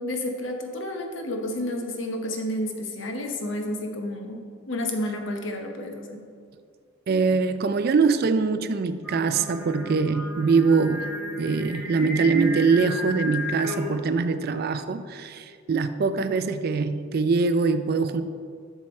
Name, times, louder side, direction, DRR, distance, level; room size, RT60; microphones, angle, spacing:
voice 1, 0.0-6.3, left 1 dB, 65° left, 3 dB, 0.9 m, -31 dB
voice 2, 7.1-11.1 11.4-18.2, right 4 dB, 50° right, 11 dB, 0.3 m, -23 dB
Singing, 9.0-14.1, left 1 dB, 10° right, 1.5 m, -34 dB
7.5 x 6.0 x 4.3 m, 2.2 s
head